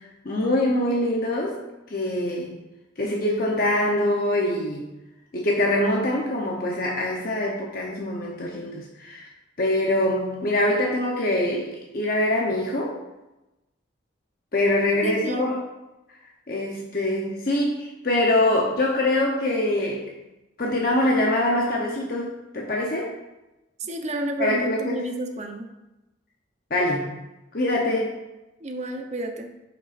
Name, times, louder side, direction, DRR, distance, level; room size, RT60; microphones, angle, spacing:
voice 1, 0.2-1.6 1.9-2.6 3.0-4.8 5.3-9.3 9.6-12.9 14.5-15.6 16.5-20.1 20.6-23.1 24.4-25.0 26.7-27.1 27.5-28.2, left 1 dB, 50° left, -2 dB, 0.9 m, -24 dB
voice 2, 15.0-15.6 23.8-25.8 28.6-29.5, right 1 dB, 40° right, 4 dB, 0.8 m, -31 dB
9.8 x 5.5 x 2.5 m, 0.99 s
head